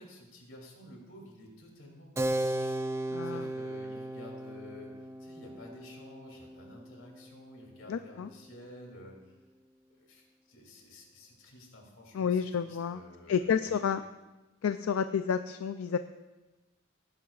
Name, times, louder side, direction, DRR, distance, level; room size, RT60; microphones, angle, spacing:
voice 1, 0.0-9.3 9.9-14.0, left 1 dB, 65° left, 0 dB, 2.8 m, -52 dB
Keyboard (musical), 2.2-8.3, right 1 dB, 15° right, 0.3 m, -36 dB
voice 2, 3.1-3.5 7.9-8.3 12.1-13.0 13.3-14.0 14.6-16.0, left 7 dB, 85° left, 10 dB, 0.4 m, -30 dB
18.5 x 10.5 x 2.4 m, 1.1 s
head